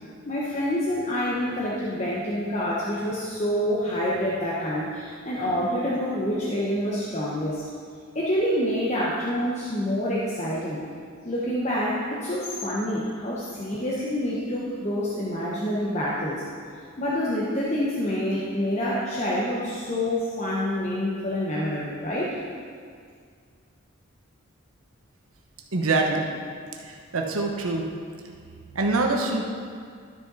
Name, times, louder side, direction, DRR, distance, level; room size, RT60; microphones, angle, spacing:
voice 1, 0.3-7.6 8.1-10.8 11.2-16.4 17.0-22.3, equal, 35° left, -6 dB, 1.0 m, -27 dB
voice 2, 25.7-26.3 26.7-27.9 28.7-29.4, right 3 dB, 90° right, 1 dB, 1.0 m, -25 dB
12.5 x 6.5 x 4.1 m, 2.1 s
head